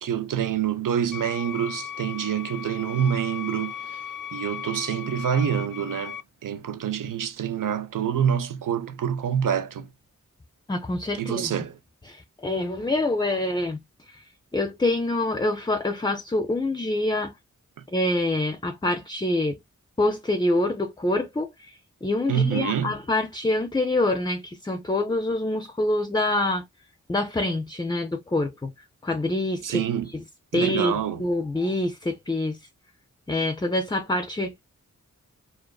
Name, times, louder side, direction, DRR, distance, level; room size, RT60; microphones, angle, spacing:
voice 1, 0.0-4.0 4.3-9.9 11.2-11.8 22.3-22.9 29.6-30.1 30.5-31.2, right 8 dB, 80° right, 0.5 m, -26 dB
sound 1, 1.1-6.2, left 8 dB, 85° left, 0.5 m, -37 dB
voice 2, 10.7-11.5 12.1-13.8 14.1-14.2 14.5-17.3 17.9-19.6 20.0-21.7 22.0-26.6 27.1-28.7 29.0-29.8 30.1-30.2 30.5-32.6 33.3-34.5, left 2 dB, 15° left, 0.4 m, -26 dB
2.5 x 2.4 x 2.2 m
wide cardioid pair, 50°, 32 cm